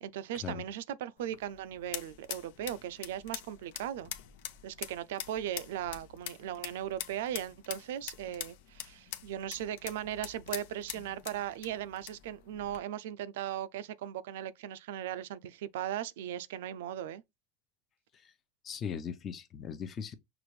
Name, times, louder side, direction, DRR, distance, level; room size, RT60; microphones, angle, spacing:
voice 1, 0.0-4.1 4.6-17.2, right 11 dB, 80° right, 0.5 m, -38 dB
sound 1, 1.2-12.8, left 11 dB, 70° left, 0.8 m, -45 dB
voice 2, 18.6-20.1, left 7 dB, 30° left, 0.7 m, -39 dB
5.9 x 2.5 x 3.2 m
supercardioid pair, 135°, 0 cm